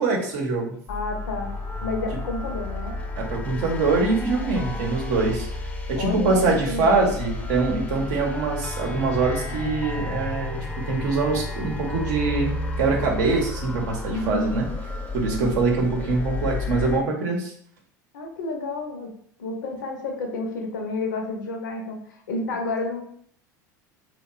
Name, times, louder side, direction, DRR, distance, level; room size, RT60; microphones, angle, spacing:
voice 1, 0.0-0.8 3.2-5.5 5.9-10.6 10.9-12.5 12.8-14.7 15.1-17.5, right 3 dB, 70° right, 1 dB, 0.7 m, -24 dB
voice 2, 0.9-1.5 1.8-3.0 4.6-4.9 6.0-7.1 14.1-14.5 15.3-15.5 18.1-19.1 19.4-23.0, left 2 dB, 80° left, 3 dB, 0.5 m, -30 dB
sound 1, 0.9-17.0, left 2 dB, 15° left, 0.4 m, -32 dB
2.8 x 2.2 x 2.3 m, 0.63 s
hypercardioid pair, 80°, 10 cm